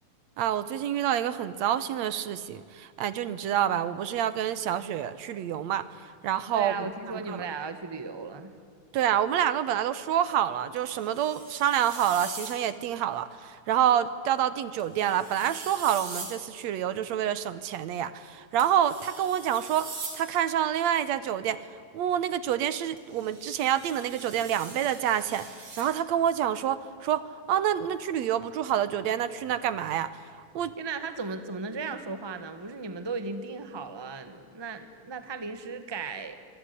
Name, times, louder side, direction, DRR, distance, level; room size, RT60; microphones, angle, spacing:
voice 1, 0.4-6.7 7.1-7.4 8.9-19.9 20.1-21.6 21.9-27.2 27.5-30.1 30.6-30.7, right 10 dB, 70° right, 15 dB, 2.1 m, -27 dB
voice 2, 6.5-8.5 30.8-36.4, right 4 dB, 15° right, 10 dB, 1.1 m, -36 dB
sound 1, 10.8-12.6 14.8-16.4 18.6-20.2 23.0-25.9, right 3 dB, 50° right, 5.3 m, -42 dB
25.5 x 23.0 x 9.8 m, 2.2 s
omnidirectional pair, 3.3 m